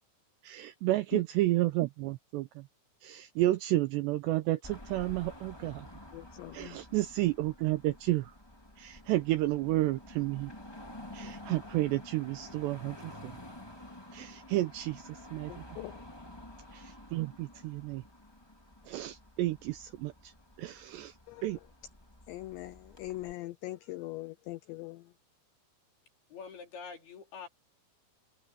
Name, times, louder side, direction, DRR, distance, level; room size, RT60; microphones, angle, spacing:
voice 1, 0.4-2.5 3.0-5.9 6.5-8.3 8.8-10.5 11.1-13.4 14.1-15.5 16.7-18.0 18.9-20.1 20.6-21.1 21.4-21.6, right 16 dB, 80° right, 2.5 m, -31 dB
Car passing by / Traffic noise roadway noise / Engine, 4.6-23.3, left 1 dB, 25° left, 0.5 m, -50 dB
voice 2, 6.1-6.8 15.5-16.0 21.3-21.7 22.3-25.1, left 17 dB, 80° left, 2.7 m, -42 dB
voice 3, 26.3-27.5, left 5 dB, 55° left, 5.8 m, -45 dB
omnidirectional pair, 5.7 m